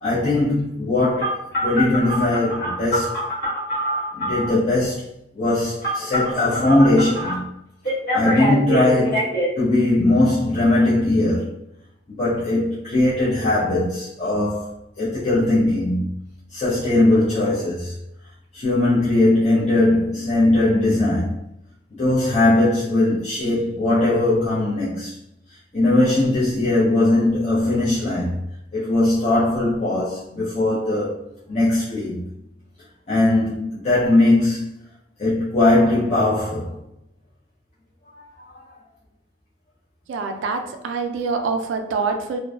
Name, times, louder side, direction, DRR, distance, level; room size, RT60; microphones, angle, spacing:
voice 1, 0.0-3.2 4.1-5.0 5.3-7.5 8.1-11.5 12.1-14.7 15.0-16.2 16.5-17.9 18.5-21.3 21.9-25.1 25.7-28.4 28.7-31.2 31.5-32.3 33.1-34.7 35.2-36.7, left 2 dB, 35° left, 0.5 m, -20 dB
Telephone, 1.2-4.5 5.8-7.3 7.8-9.5, equal, 55° left, 1.0 m, -24 dB
voice 2, 40.1-42.4, right 4 dB, 85° right, 0.3 m, -25 dB
2.5 x 2.2 x 2.3 m
head